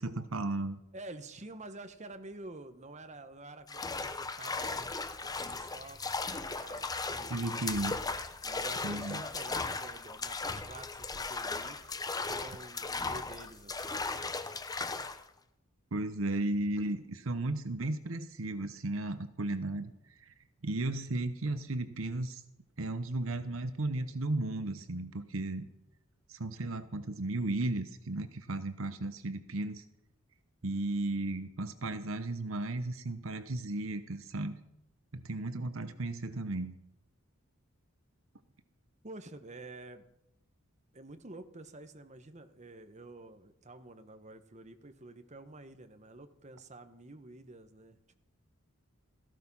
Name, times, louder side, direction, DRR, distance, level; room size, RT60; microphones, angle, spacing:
voice 1, 0.0-0.8 7.3-8.0 8.8-9.2 15.9-19.9 20.6-22.4 22.8-25.7 26.3-29.8 30.6-34.6 35.1-36.8, right 2 dB, 70° right, 11 dB, 1.0 m, -35 dB
voice 2, 0.9-4.9 5.2-6.0 6.5-8.0 8.4-11.8 12.3-14.0 39.0-40.1 40.9-48.0, right 2 dB, 35° right, 9 dB, 1.2 m, -49 dB
sound 1, 3.7-15.2, left 3 dB, 20° left, 0.8 m, -37 dB
17.0 x 15.0 x 5.6 m, 0.79 s
head